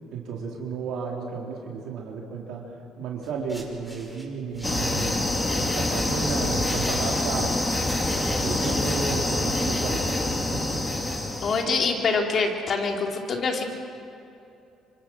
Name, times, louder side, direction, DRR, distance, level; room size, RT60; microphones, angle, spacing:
voice 1, 0.1-2.6 3.0-5.2 5.5-7.5 8.3-10.2 10.5-10.8, right 5 dB, 70° right, -1 dB, 4.3 m, -33 dB
sound 1, 3.2-5.2 5.9-9.0, right 1 dB, ahead, 6.3 m, -43 dB
sound 2, 4.6-11.6, left 2 dB, 20° left, 3.3 m, -26 dB
voice 2, 11.4-13.6, left 4 dB, 50° left, 2 dB, 4.1 m, -25 dB
27.5 x 26.0 x 6.5 m, 2.7 s
supercardioid pair, 70°, 0 cm